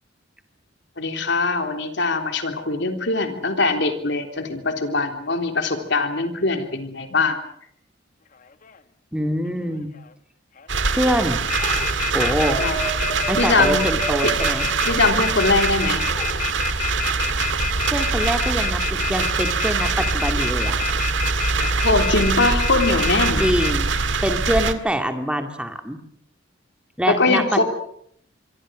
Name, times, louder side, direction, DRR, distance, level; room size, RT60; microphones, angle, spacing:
voice 1, 1.0-7.4 12.6-12.8 13.4-13.9 14.2-14.3 14.9-16.0 21.8-23.4 27.1-27.6, left 3 dB, 65° left, 5 dB, 3.4 m, -22 dB
sound 1, 8.4-8.8 9.5-10.1 10.6-10.9 11.2-23.7, left 7 dB, 45° left, 1.1 m, -28 dB
voice 2, 9.1-9.9 10.9-11.4 12.1-12.6 13.3-14.7 17.9-20.8 23.4-23.9 24.2-26.0 27.0-27.6, equal, 5° right, 6 dB, 2.3 m, -24 dB
sound 2, 10.7-24.7, right 4 dB, 70° right, 1.9 m, -23 dB
sound 3, 11.1-11.3 11.6-11.9 12.2-16.3, right 2 dB, 25° left, 5.8 m, -32 dB
25.0 x 24.5 x 6.4 m, 0.67 s
head